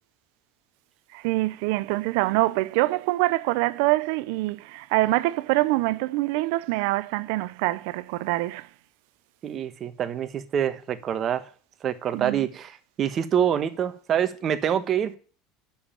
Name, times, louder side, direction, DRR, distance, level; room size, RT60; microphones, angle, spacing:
voice 1, 1.1-8.7 12.1-12.5, right 19 dB, 70° right, 0.7 m, -25 dB
voice 2, 9.4-11.5 11.8-15.2, right 9 dB, 35° right, 1.2 m, -26 dB
9.8 x 7.3 x 8.7 m
supercardioid pair, 135°, 0 cm